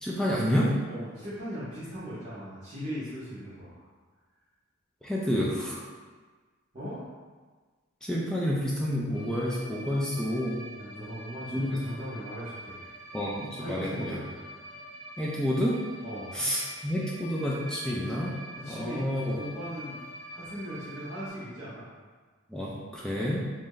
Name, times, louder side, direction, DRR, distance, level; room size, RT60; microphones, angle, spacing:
voice 1, 0.0-0.8 5.0-5.8 8.0-10.6 11.5-11.8 13.1-14.2 15.2-15.8 16.3-18.3 18.7-19.4 22.5-23.5, equal, 5° left, -5 dB, 0.3 m, -29 dB
voice 2, 0.9-3.9 6.7-7.0 10.8-12.9 13.6-14.6 16.0-16.4 18.5-20.0 20.3-21.8, equal, 30° right, -12 dB, 0.9 m, -39 dB
sound 1, 9.1-21.3, equal, 30° left, 1.0 m, -45 dB
3.1 x 2.6 x 3.7 m, 1.4 s
head